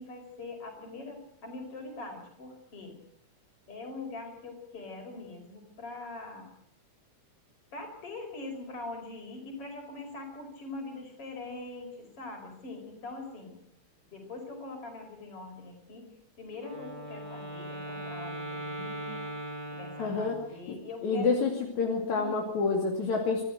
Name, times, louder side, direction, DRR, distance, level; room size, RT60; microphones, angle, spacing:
voice 1, 0.0-3.0 3.7-6.5 7.7-13.6 14.1-16.1 16.4-19.3 19.7-21.4 22.2-22.6, left 3 dB, 50° left, 3 dB, 6.1 m, -42 dB
Wind instrument woodwind instrument, 16.5-20.7, right 1 dB, 60° right, 8.0 m, -39 dB
voice 2, 20.0-20.4 20.7-20.8 21.0-21.5 21.8-23.4, left 4 dB, 75° left, 0 dB, 3.8 m, -28 dB
25.0 x 15.0 x 8.0 m, 0.73 s
omnidirectional pair, 3.3 m